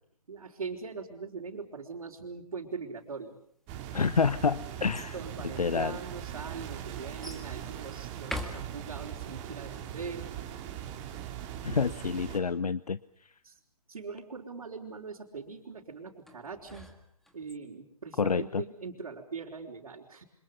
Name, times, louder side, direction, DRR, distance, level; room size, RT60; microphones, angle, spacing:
voice 1, 0.3-3.4 5.1-10.3 13.4-13.6 13.9-16.9 17.3-20.2, right 5 dB, 65° right, -5 dB, 4.7 m, -41 dB
sound 1, 3.7-12.4, right 10 dB, 20° right, 3.1 m, -40 dB
sound 2, 3.8-5.2 6.0-6.1 7.2-7.5 8.2-9.2 16.3-17.5, left 1 dB, ahead, 1.9 m, -43 dB
voice 2, 3.9-5.2 5.6-6.0 11.6-13.3 18.2-18.6, left 5 dB, 75° left, 15 dB, 1.0 m, -28 dB
30.0 x 26.5 x 5.4 m, 0.65 s
figure-of-eight pair, 145°, 20 cm